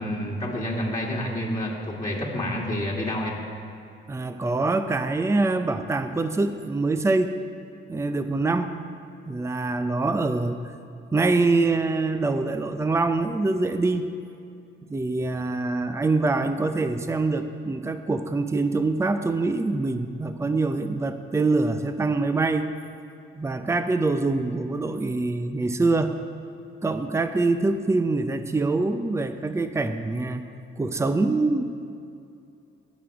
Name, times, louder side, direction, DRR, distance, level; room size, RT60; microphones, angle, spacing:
voice 1, 0.0-3.4, left 1 dB, 15° left, -4 dB, 2.1 m, -29 dB
voice 2, 4.1-7.4 7.9-8.8 9.3-10.7 11.1-14.1 14.9-22.7 23.4-26.2 26.8-30.4 30.8-31.6, right 3 dB, 15° right, 9 dB, 0.6 m, -24 dB
17.5 x 6.2 x 4.8 m, 2.6 s
cardioid pair, 90°, 20 cm